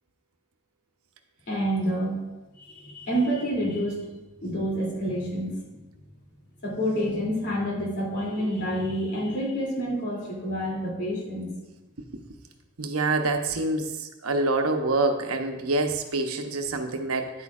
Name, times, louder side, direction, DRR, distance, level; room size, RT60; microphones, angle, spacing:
voice 1, 1.5-2.2 2.6-4.1 4.4-5.6 6.6-11.5, equal, 55° left, -4 dB, 2.7 m, -28 dB
voice 2, 12.8-13.9 14.2-17.3, right 2 dB, 90° right, 5 dB, 0.8 m, -26 dB
10.5 x 8.3 x 2.4 m, 1.1 s
head